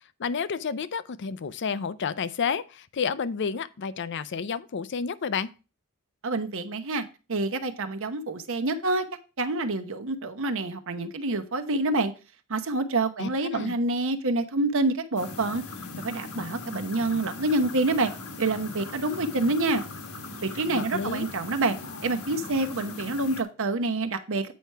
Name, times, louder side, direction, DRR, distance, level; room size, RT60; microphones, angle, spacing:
voice 1, 0.2-5.5 13.2-13.7 20.7-21.2, left 6 dB, 55° left, 0.5 m, -30 dB
voice 2, 6.2-7.0 7.3-9.1 9.4-12.1 12.5-15.6 16.0-18.1 18.4-19.8 20.4-21.8 22.0-24.5, right 2 dB, 65° right, 0.9 m, -27 dB
sound 1, 15.2-23.4, left 3 dB, 70° left, 1.4 m, -40 dB
8.4 x 4.7 x 5.6 m
head